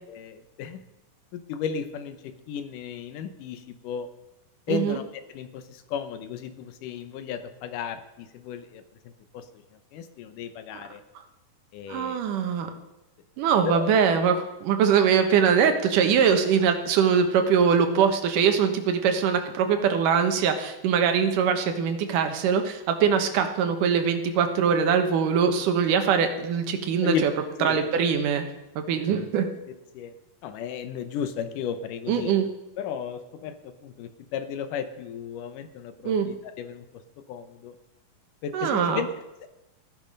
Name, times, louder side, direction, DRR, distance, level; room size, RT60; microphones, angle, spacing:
voice 1, 0.1-0.8 1.3-4.1 4.7-5.0 5.3-9.6 9.9-11.0 11.7-12.2 13.6-13.9 23.4-23.5 27.0-27.2 27.6-27.9 28.9-29.0 29.9-30.1 30.4-32.4 32.8-37.0 37.3-37.8 38.4-39.1 39.4-39.5, left 7 dB, 75° left, 10 dB, 2.5 m, -34 dB
voice 2, 4.7-5.0 11.9-12.8 13.4-27.3 27.6-28.4 28.8-29.5 32.1-32.5 36.0-36.3 38.5-39.0, right 7 dB, 75° right, 6 dB, 2.8 m, -22 dB
15.5 x 10.5 x 5.3 m, 0.96 s
omnidirectional pair, 3.8 m